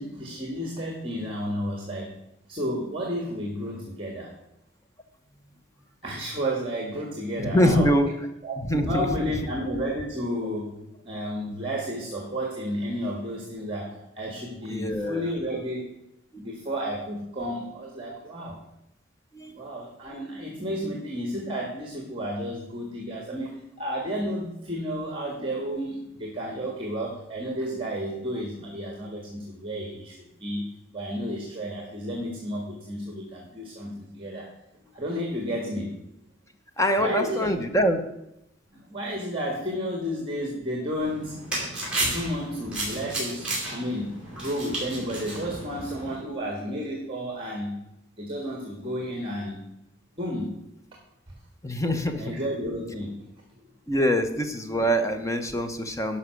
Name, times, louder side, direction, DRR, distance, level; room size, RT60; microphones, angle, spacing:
voice 1, 0.0-2.1 2.5-4.3 6.0-7.9 8.4-10.8 11.0-15.8 16.4-18.6 19.5-30.7 30.9-34.5 34.9-35.9 37.0-37.6 38.7-41.3 42.0-47.7 48.2-49.6 50.2-50.5 52.2-53.2, equal, 30° right, 0 dB, 1.6 m, -32 dB
voice 2, 7.4-8.1 8.6-8.9 14.7-15.3 19.3-19.6 36.8-38.0 42.0-42.2 51.6-52.3 53.9-56.2, equal, 15° left, 7 dB, 0.9 m, -24 dB
sound 1, 41.0-46.2, right 1 dB, 5° right, 4.4 m, -33 dB
11.0 x 5.7 x 6.3 m, 0.85 s
head